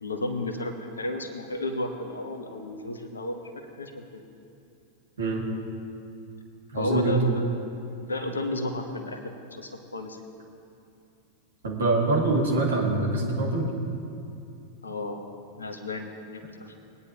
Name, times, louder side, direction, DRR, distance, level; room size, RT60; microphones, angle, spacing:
voice 1, 0.0-3.4 3.8-4.2 6.7-7.4 8.0-10.2 14.8-15.2 15.6-16.7, left 2 dB, 75° left, 6 dB, 1.1 m, -33 dB
voice 2, 6.7-7.2 11.6-13.7, right 2 dB, 65° right, -1 dB, 2.1 m, -24 dB
20.5 x 9.8 x 2.8 m, 2.6 s
figure-of-eight pair, 90°, 0 cm